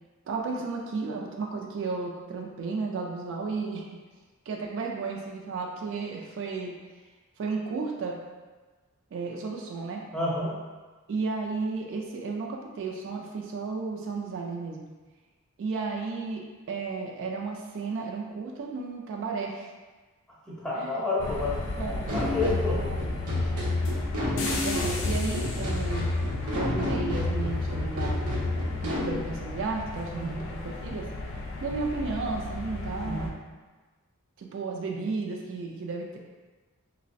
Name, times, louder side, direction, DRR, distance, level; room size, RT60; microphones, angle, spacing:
voice 1, 0.3-3.9 4.5-6.7 7.4-8.2 9.1-10.0 11.1-14.9 15.6-19.7 20.8-21.0 21.8-23.0 23.3-23.5 24.2-26.1 26.5-28.3 28.8-30.4 30.6-31.1 31.6-33.3 34.4-36.2, right 4 dB, 60° right, 0 dB, 0.3 m, -33 dB
voice 2, 10.1-10.6 20.5-21.6 21.9-22.8 30.1-30.5 33.0-33.4, left 2 dB, 5° left, -7 dB, 0.5 m, -30 dB
sound 1, 21.2-33.3, left 2 dB, 60° left, 0.4 m, -35 dB
sound 2, 22.1-29.1, left 2 dB, 85° right, 0.7 m, -29 dB
3.1 x 2.0 x 2.6 m, 1.3 s
head